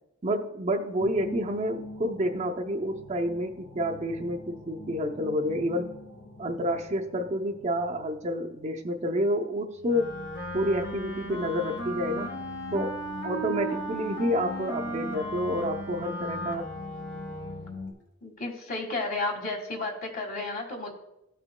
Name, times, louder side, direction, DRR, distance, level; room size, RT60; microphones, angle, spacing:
voice 1, 0.2-5.9 6.4-10.2 10.5-12.3 12.7-16.6, equal, 35° right, 3 dB, 0.5 m, -29 dB
sound 1, 1.0-9.4 9.7-17.9, left 3 dB, 85° left, 2.3 m, -44 dB
Wind instrument woodwind instrument, 9.8-17.7, right 1 dB, 60° left, 1.5 m, -36 dB
voice 2, 18.2-20.9, left 2 dB, 45° left, 1 dB, 1.6 m, -32 dB
13.5 x 5.9 x 2.2 m, 0.84 s
head